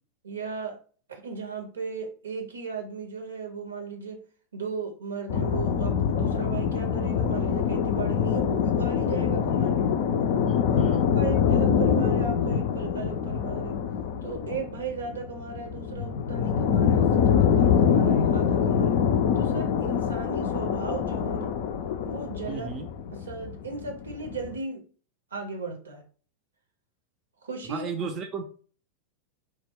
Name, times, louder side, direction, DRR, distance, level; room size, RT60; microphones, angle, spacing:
voice 1, 0.2-0.8 1.1-4.2 4.5-9.9 10.7-13.8 14.2-19.0 19.4-21.6 22.0-22.7 23.1-24.8 25.3-26.0 27.4-27.9, right 5 dB, 70° right, 4 dB, 0.6 m, -36 dB
sound 1, 5.3-24.5, left 7 dB, 50° left, 0.3 m, -25 dB
voice 2, 10.4-11.1 22.5-22.9 27.7-28.4, right 5 dB, 30° right, 3 dB, 0.4 m, -35 dB
2.1 x 2.1 x 3.5 m, 0.41 s
figure-of-eight pair, 90°, 0 cm